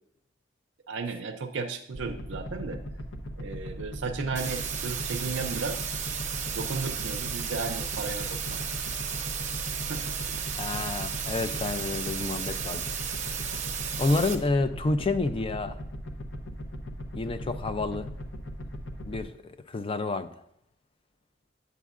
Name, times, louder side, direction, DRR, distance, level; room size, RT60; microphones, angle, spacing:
voice 1, 0.9-2.8 3.4-5.8 6.5-8.6 9.9-10.0, right 4 dB, 70° right, 0.5 m, -34 dB
sound 1, 1.9-19.2, equal, 85° left, 0.9 m, -38 dB
sound 2, 4.4-14.4, right 7 dB, 40° right, 0.8 m, -34 dB
voice 2, 10.5-12.8 14.0-15.8 17.1-18.1 19.0-20.3, left 3 dB, 30° left, 0.4 m, -29 dB
8.1 x 8.1 x 2.4 m
head